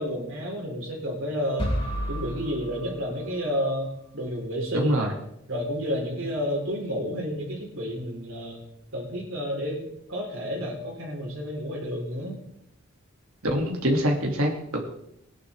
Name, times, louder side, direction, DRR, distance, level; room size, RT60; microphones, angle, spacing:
voice 1, 0.0-1.8 2.1-5.1 5.5-8.6 8.9-9.8 10.1-12.4, equal, 70° right, -1 dB, 4.5 m, -30 dB
sound 1, 1.6-3.6, equal, 25° left, 3.0 m, -32 dB
voice 2, 4.7-5.1 13.4-14.8, equal, 85° right, 1 dB, 2.8 m, -25 dB
20.0 x 11.0 x 3.7 m, 0.78 s
head